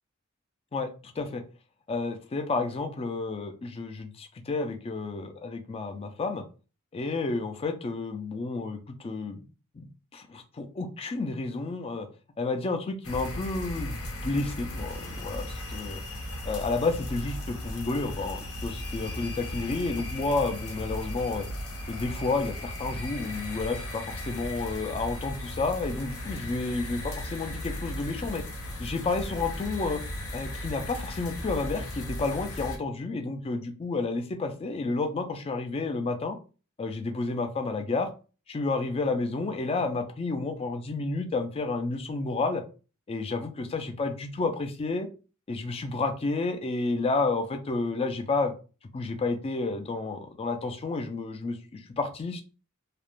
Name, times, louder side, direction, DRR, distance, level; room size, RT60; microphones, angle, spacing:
voice 1, 0.7-1.4 1.9-6.4 6.9-9.4 9.7-12.1 12.4-16.0 16.5-21.5 21.9-28.4 28.8-30.0 30.3-36.4 36.8-38.1 38.5-42.6 43.1-45.1 45.5-48.5 48.9-52.4, left 3 dB, 25° left, 7 dB, 0.3 m, -31 dB
sound 1, 13.0-32.8, left 1 dB, 75° left, 0.7 m, -36 dB
2.4 x 2.0 x 3.0 m, 0.35 s
head